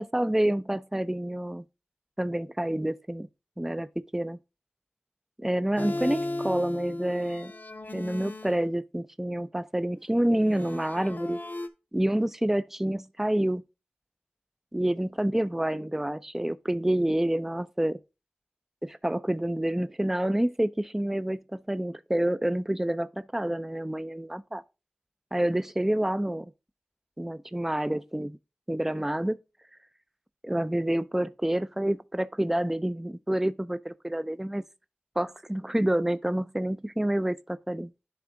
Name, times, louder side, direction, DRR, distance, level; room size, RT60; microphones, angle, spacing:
voice 1, 0.0-1.7 2.2-3.3 3.6-4.4 5.4-7.5 7.9-11.4 11.9-13.6 14.7-18.0 18.8-24.6 25.3-26.5 27.2-28.4 28.7-29.4 30.4-34.6 35.2-37.9, right 1 dB, 10° right, 0.3 m, -28 dB
sound 1, 5.8-8.6 10.3-11.7, left 2 dB, 50° left, 0.6 m, -35 dB
10.5 x 3.5 x 3.7 m
wide cardioid pair, 55°, 4 cm